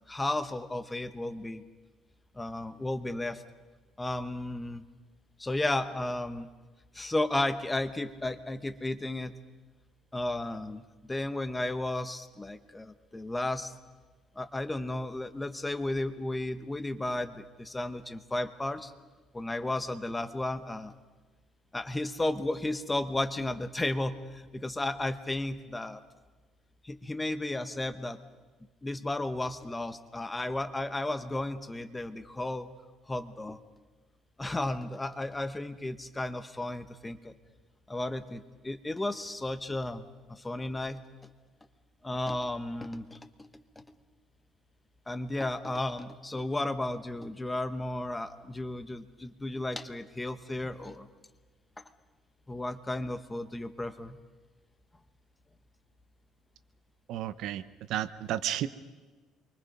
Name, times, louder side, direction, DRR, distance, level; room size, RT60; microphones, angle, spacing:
voice 1, 0.1-1.6 2.4-3.4 4.0-4.8 5.4-6.5 6.9-9.3 10.1-10.8 11.1-13.7 14.4-18.9 19.3-20.9 21.7-26.0 26.8-28.2 28.8-32.7 33.1-33.6 34.4-37.3 37.9-41.0 42.0-43.5 45.1-51.1 52.5-54.2, left 2 dB, 10° left, 11 dB, 1.0 m, -33 dB
voice 2, 57.1-58.7, right 12 dB, 65° right, 14 dB, 0.9 m, -33 dB
28.0 x 24.0 x 5.4 m, 1.3 s
cardioid pair, 145°, 0 cm